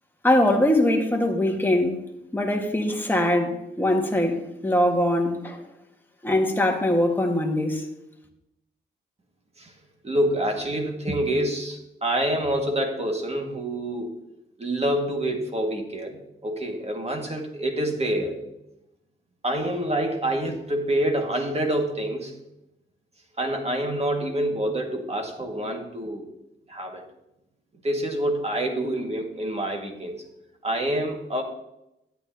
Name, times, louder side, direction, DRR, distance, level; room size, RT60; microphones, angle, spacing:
voice 1, 0.2-2.0 2.3-5.6 6.2-7.8, left 1 dB, 10° left, 1.7 m, -22 dB
voice 2, 10.0-14.1 14.6-18.4 19.4-22.3 23.4-26.3 26.7-27.0 27.8-30.2 30.6-31.4, right 1 dB, 30° right, 1.9 m, -27 dB
11.0 x 8.7 x 2.9 m
cardioid pair, 70°, 21 cm